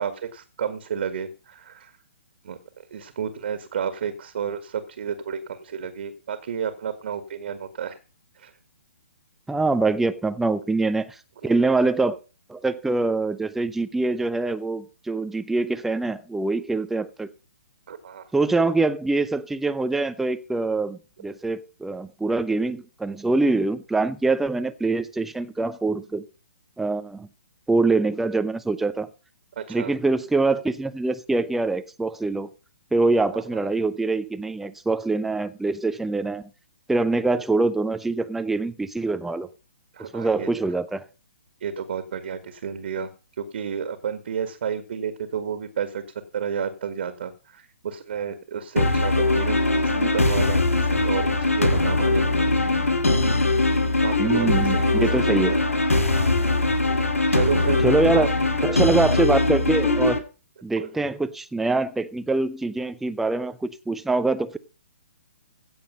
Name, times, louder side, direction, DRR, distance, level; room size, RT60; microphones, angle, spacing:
voice 1, 0.0-1.9 2.4-2.6 2.9-8.0 8.4-8.5 17.9-18.2 18.6-18.7 29.6-29.9 33.3-33.4 39.9-40.5 41.6-43.1 43.4-46.0 46.3-52.5 54.0-55.6 57.3-57.9 58.1-58.3 60.8-60.9, right 7 dB, 50° right, 1.8 m, -31 dB
voice 2, 9.5-11.2 11.4-12.2 12.5-17.3 18.3-26.2 26.8-27.3 27.7-29.1 29.7-32.5 32.9-36.4 36.9-39.5 40.0-41.0 54.2-55.5 57.8-58.3 58.6-60.2 60.6-64.6, right 3 dB, 5° right, 0.6 m, -24 dB
sound 1, 48.8-60.2, left 2 dB, 80° left, 2.4 m, -21 dB
16.0 x 7.1 x 5.3 m
figure-of-eight pair, 130°, 7 cm